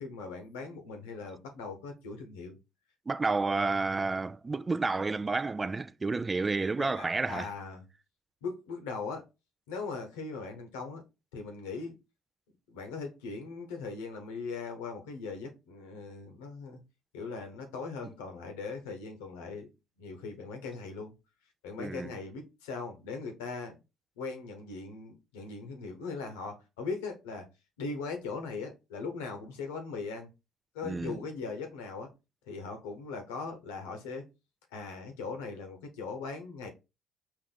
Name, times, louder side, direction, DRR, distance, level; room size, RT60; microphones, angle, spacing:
voice 1, 0.0-2.6 6.8-7.8 8.4-9.2 9.7-11.0 11.3-12.0 12.7-16.8 17.1-19.7 20.0-21.1 21.6-23.8 24.2-27.5 27.8-30.3 30.7-32.1 32.5-34.3 34.7-36.7, left 4 dB, 90° left, 1.2 m, -39 dB
voice 2, 3.1-7.5 21.8-22.1 30.8-31.2, right 3 dB, 25° right, 0.3 m, -30 dB
4.6 x 2.6 x 3.9 m
hypercardioid pair, 65°, 0 cm